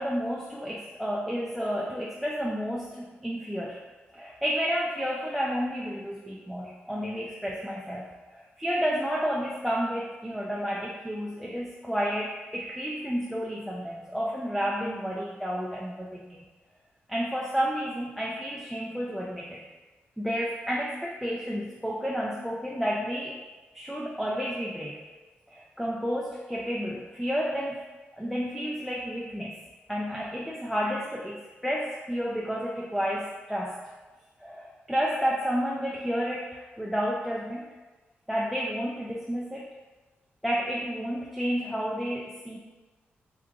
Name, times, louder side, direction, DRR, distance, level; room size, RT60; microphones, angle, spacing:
voice 1, 0.0-3.8 4.1-16.5 17.1-19.6 20.2-23.4 23.7-25.0 25.5-27.8 28.2-29.6 29.9-33.8 34.4-37.7 38.3-39.7 40.4-42.6, equal, ahead, -4 dB, 0.4 m, -31 dB
3.5 x 2.7 x 2.5 m, 1.2 s
cardioid pair, 85°, 4 cm